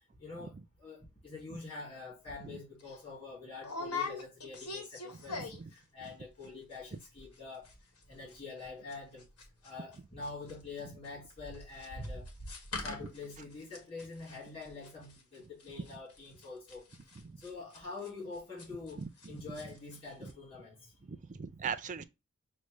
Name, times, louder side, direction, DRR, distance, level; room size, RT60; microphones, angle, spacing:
voice 1, 0.2-5.4 5.7-7.7 8.1-9.2 9.6-12.2 12.8-16.8 17.4-20.9, left 3 dB, 25° left, 2.2 m, -46 dB
sound 1, 2.3-2.4 2.8-3.0 3.6-5.8 6.0-6.5 6.7-6.8 7.0-7.4 7.6-10.0 10.2-19.3 19.5-20.0 20.2-20.3, left 3 dB, 75° left, 1.4 m, -43 dB
voice 2, 19.0-19.3 20.2-20.3 21.0-22.0, right 6 dB, 35° right, 0.4 m, -40 dB
6.2 x 2.1 x 3.1 m
head